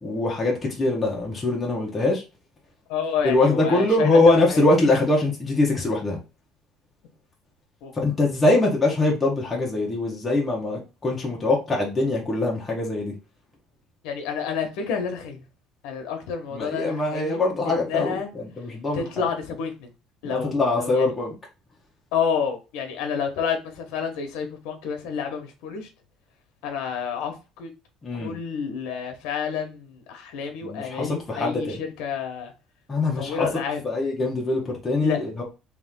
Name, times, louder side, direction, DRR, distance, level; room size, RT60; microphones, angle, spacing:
voice 1, 0.0-2.2 3.2-6.2 7.9-13.1 16.5-19.1 20.2-21.3 28.0-28.3 30.6-31.8 32.9-33.5 33.8-35.4, left 2 dB, 15° left, 1.3 m, -23 dB
voice 2, 2.9-4.9 7.8-7.9 14.0-15.4 15.8-17.4 17.6-18.3 18.9-19.9 20.2-21.1 22.1-25.9 26.6-27.7 28.1-32.5 33.2-33.8 35.0-35.2, left 6 dB, 85° left, 1.3 m, -29 dB
3.5 x 3.2 x 3.7 m
cardioid pair, 170°, 0 cm